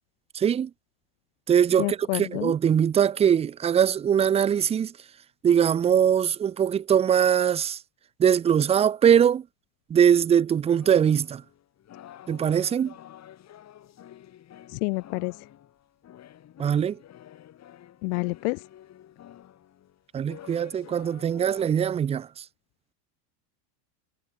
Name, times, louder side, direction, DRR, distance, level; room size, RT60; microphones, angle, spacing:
voice 1, 0.3-0.7 1.5-4.9 5.4-7.8 8.2-9.4 9.9-11.4 12.3-12.9 16.6-17.0 20.1-22.3, right 8 dB, 15° right, 0.5 m, -22 dB
voice 2, 1.8-2.5 14.8-15.3 18.0-18.6, left 31 dB, 65° left, 0.6 m, -28 dB
sound 1, 10.6-21.7, left 11 dB, 35° left, 5.5 m, -49 dB
supercardioid pair, 145°, 49 cm